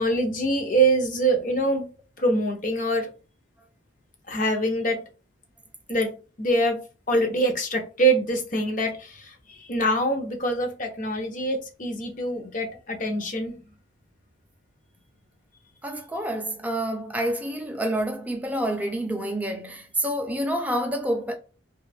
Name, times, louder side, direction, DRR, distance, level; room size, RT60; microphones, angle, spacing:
voice 1, 0.0-1.9 2.2-3.1 4.3-5.0 5.9-6.1 6.4-6.8 7.1-13.6, right 2 dB, 40° left, 0.6 m, -24 dB
voice 2, 15.8-21.4, right 1 dB, 10° right, 0.4 m, -28 dB
2.9 x 2.3 x 3.3 m
head